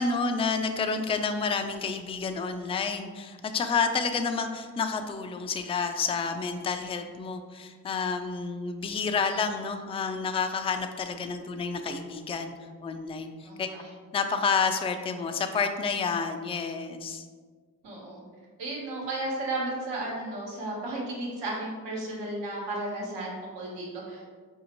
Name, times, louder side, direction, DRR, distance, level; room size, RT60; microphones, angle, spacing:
voice 1, 0.0-12.5 12.8-13.7 14.1-17.3, left 5 dB, 15° left, 7 dB, 0.3 m, -29 dB
voice 2, 13.4-13.9 17.8-18.2 18.6-24.2, right 2 dB, 80° right, -3 dB, 1.1 m, -34 dB
4.8 x 2.7 x 2.9 m, 1.5 s
supercardioid pair, 45°, 40 cm